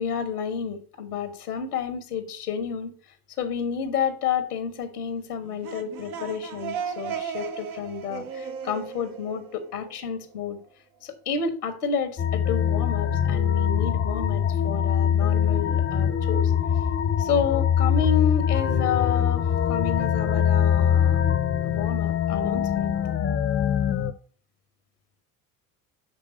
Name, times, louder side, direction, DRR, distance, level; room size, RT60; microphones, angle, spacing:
voice 1, 0.0-2.9 3.4-10.6 11.0-16.5 17.2-21.2 21.6-22.9, left 7 dB, 80° left, 9 dB, 1.1 m, -30 dB
sound 1, 5.4-10.2, right 7 dB, 70° right, 1.0 m, -36 dB
sound 2, 12.2-24.1, left 8 dB, 25° left, 0.6 m, -23 dB
6.7 x 3.5 x 6.1 m, 0.41 s
figure-of-eight pair, 65°, 45 cm